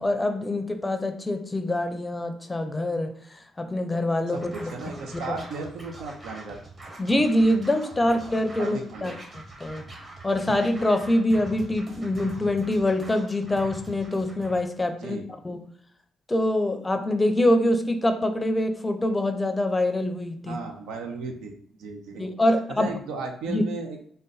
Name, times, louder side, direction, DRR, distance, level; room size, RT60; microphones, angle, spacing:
voice 1, 0.0-3.1 3.6-4.7 7.0-9.8 10.2-15.6 16.3-20.6 22.2-22.9 23.5-23.6, left 1 dB, 15° left, 8 dB, 0.5 m, -25 dB
Scratching (performance technique), 4.3-14.6, right 2 dB, 30° right, 1.1 m, -43 dB
voice 2, 4.3-6.6 8.0-8.1 8.6-9.2 15.0-15.3 20.5-21.5 21.8-22.3 22.7-24.1, right 4 dB, 90° right, 4 dB, 0.6 m, -35 dB
3.9 x 2.2 x 3.8 m, 0.63 s
cardioid pair, 90°, 0 cm